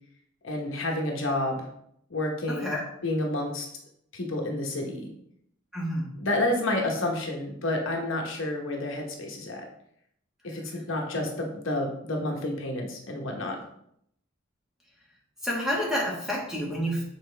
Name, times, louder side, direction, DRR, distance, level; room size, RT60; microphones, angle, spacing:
voice 1, 0.4-1.7 2.1-3.7 4.1-5.1 6.2-9.6 10.4-13.6, left 1 dB, 65° left, 1 dB, 1.0 m, -30 dB
voice 2, 2.5-2.8 5.7-6.1 15.4-17.0, equal, 5° right, -4 dB, 1.5 m, -29 dB
6.6 x 4.3 x 3.3 m, 0.72 s
head